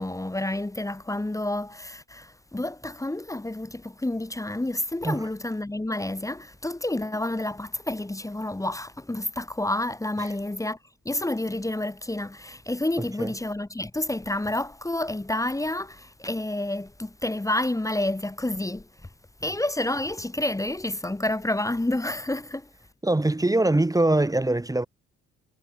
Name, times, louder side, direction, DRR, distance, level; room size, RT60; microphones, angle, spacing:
voice 1, 0.0-10.8 11.1-18.9 19.4-22.7, left 1 dB, 10° left, 2.0 m, -29 dB
voice 2, 23.0-24.9, right 2 dB, 10° right, 1.9 m, -22 dB
cardioid pair, 90°, 30 cm